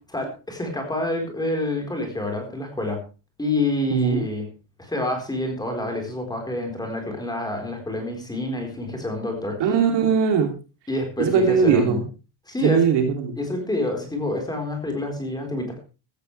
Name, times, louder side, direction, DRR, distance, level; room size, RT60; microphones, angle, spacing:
voice 1, 0.1-3.0 3.4-4.4 4.8-9.6 10.9-12.0 12.5-12.8 13.4-15.8, left 1 dB, 10° left, 3 dB, 4.2 m, -27 dB
voice 2, 3.9-4.3 9.6-10.5 11.2-12.0 12.6-13.4, right 6 dB, 55° right, 4 dB, 3.0 m, -20 dB
16.0 x 15.0 x 3.3 m, 0.32 s
cardioid pair, 175°, 50 cm